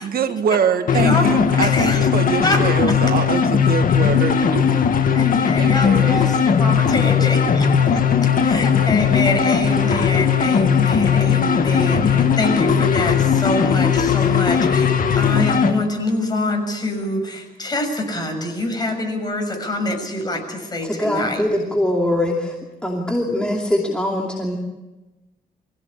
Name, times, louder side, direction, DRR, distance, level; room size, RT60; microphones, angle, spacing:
voice 1, 0.0-4.7 5.5-6.2, right 7 dB, 70° right, 8 dB, 1.6 m, -24 dB
sound 1, 0.9-15.7, left 7 dB, 60° left, 2.0 m, -17 dB
voice 2, 0.9-2.1 2.4-2.6 2.9-3.0 5.1-21.4, left 2 dB, 25° left, 3 dB, 6.6 m, -25 dB
voice 3, 20.8-22.6 22.8-24.6, left 1 dB, 5° left, -1 dB, 2.8 m, -22 dB
24.5 x 16.5 x 8.5 m, 1.1 s
cardioid pair, 105°, 16 cm